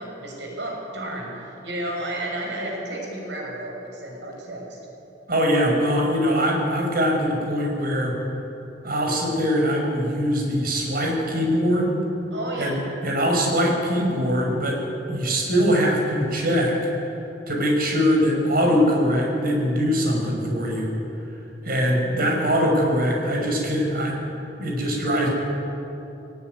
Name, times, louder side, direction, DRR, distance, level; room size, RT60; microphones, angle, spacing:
voice 1, 0.0-4.8 12.3-12.8, right 1 dB, 80° right, 0 dB, 6.1 m, -32 dB
voice 2, 5.3-8.1 8.8-12.0 12.6-14.8 15.1-16.8 17.5-20.9 21.6-24.2 24.6-25.3, equal, 55° right, 0 dB, 6.1 m, -22 dB
21.0 x 19.5 x 9.6 m, 2.9 s
head